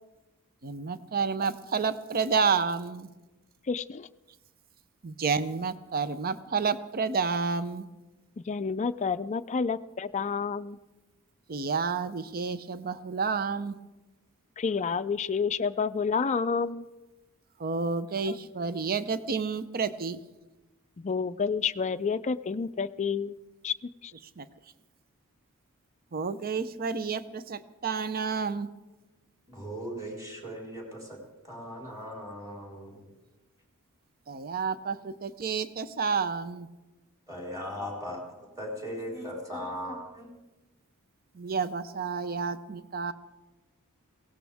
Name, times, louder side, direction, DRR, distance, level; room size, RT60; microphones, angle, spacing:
voice 1, 0.6-3.1 5.0-7.8 11.5-13.8 17.6-20.2 24.4-24.5 26.1-28.7 34.3-36.7 41.4-43.1, right 5 dB, 45° right, 13 dB, 0.6 m, -30 dB
voice 2, 3.7-4.1 8.5-10.8 14.6-16.9 18.2-18.4 21.0-23.4 23.6-23.7 24.0-24.1, left 5 dB, 30° left, 11 dB, 0.4 m, -29 dB
voice 3, 29.5-33.0 37.3-40.3, equal, 15° right, -2 dB, 4.2 m, -38 dB
22.5 x 17.5 x 3.5 m, 1.1 s
head